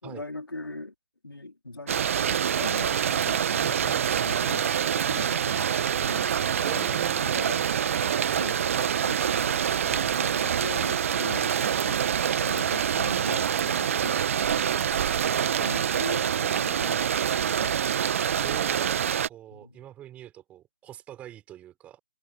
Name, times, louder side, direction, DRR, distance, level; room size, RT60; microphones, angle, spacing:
voice 1, 0.0-0.9 1.2-5.7 6.0-7.6 8.4-12.0 12.4-15.1 15.6-17.1 17.4-17.8 19.5-19.8, left 2 dB, 75° left, 4.7 m, -40 dB
sound 1, 1.9-19.3, right 8 dB, 35° right, 1.5 m, -26 dB
voice 2, 6.6-7.4 8.3-8.6 18.4-19.0 19.2-22.0, right 12 dB, 10° right, 4.9 m, -43 dB
figure-of-eight pair, 145°, 12 cm